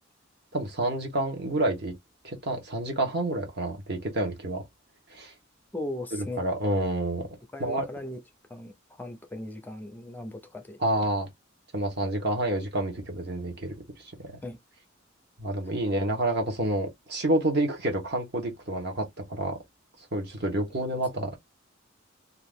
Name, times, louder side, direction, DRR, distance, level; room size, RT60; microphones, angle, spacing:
voice 1, 0.5-1.9 2.2-4.6 5.1-5.3 6.1-7.3 7.6-7.9 10.8-11.3 11.7-13.7 14.2-14.3 15.4-19.6 20.1-21.3, right 1 dB, 55° right, 1.1 m, -28 dB
voice 2, 5.7-6.4 6.7-6.8 7.5-8.2 8.5-8.7 9.0-10.8 14.4-14.6, left 1 dB, 10° left, 0.4 m, -37 dB
2.8 x 2.5 x 3.5 m
head